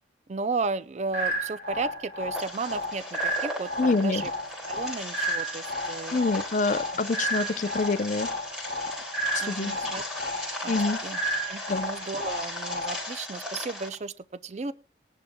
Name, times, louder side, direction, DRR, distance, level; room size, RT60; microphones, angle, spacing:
voice 1, 0.3-4.3 4.7-6.2 9.4-10.0 10.6-11.2 11.5-14.7, right 4 dB, 40° right, 0.4 m, -34 dB
sound 1, 1.1-13.1, equal, 80° right, 3.7 m, -33 dB
sound 2, 2.3-13.9, left 1 dB, 5° right, 3.4 m, -37 dB
voice 2, 3.8-4.2 6.1-8.3 9.4-9.9 10.7-11.0 11.7-11.9, left 3 dB, 45° left, 0.6 m, -26 dB
20.0 x 10.5 x 2.3 m
head